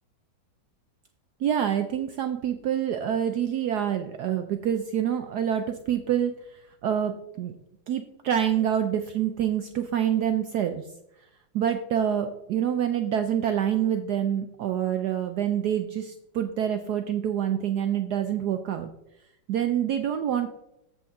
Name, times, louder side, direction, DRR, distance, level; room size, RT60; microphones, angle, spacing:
voice 1, 1.4-7.5 7.9-10.8 11.5-18.9 19.5-20.5, right 9 dB, 75° right, 7 dB, 0.9 m, -26 dB
7.9 x 6.9 x 3.6 m, 0.83 s
omnidirectional pair, 2.2 m